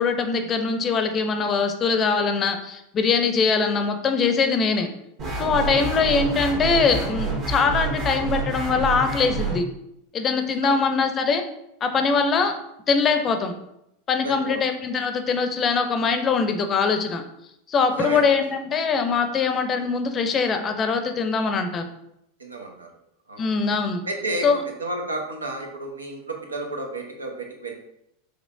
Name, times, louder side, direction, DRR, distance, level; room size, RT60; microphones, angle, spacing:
voice 1, 0.0-4.9 5.4-9.7 10.1-11.4 11.8-12.5 12.9-13.5 14.1-17.2 17.7-21.8 23.4-24.0 24.4-24.6, left 5 dB, 30° left, 6 dB, 0.5 m, -22 dB
sound 1, 5.2-9.6, right 3 dB, 45° right, 1.4 m, -28 dB
voice 2, 14.1-14.6 18.0-18.3 22.4-22.9 23.3-23.7 24.0-27.7, right 2 dB, 85° right, 2 dB, 0.7 m, -32 dB
5.0 x 3.2 x 2.5 m, 0.80 s
figure-of-eight pair, 90°, 0 cm